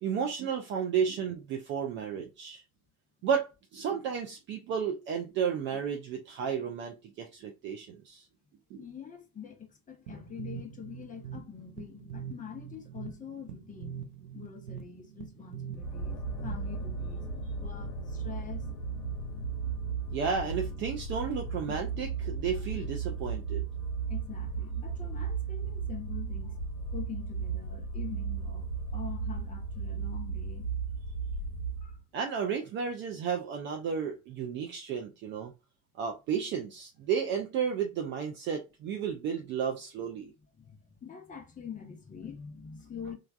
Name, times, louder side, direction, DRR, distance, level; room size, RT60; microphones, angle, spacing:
voice 1, 0.0-2.6 3.2-8.3 8.7-8.8 20.1-23.6 32.1-35.5 36.0-40.3, right 7 dB, 30° right, 0.3 m, -33 dB
voice 2, 8.8-14.0 14.3-17.2 17.5-18.7 24.1-26.6 26.9-30.7 31.8-32.0 40.0-43.1, left 7 dB, 15° left, 0.7 m, -45 dB
sound 1, 10.1-16.9, right 8 dB, 85° right, 0.6 m, -44 dB
sound 2, 15.7-32.0, right 5 dB, 75° left, 0.8 m, -35 dB
3.1 x 2.3 x 2.3 m
figure-of-eight pair, 75°, 45 cm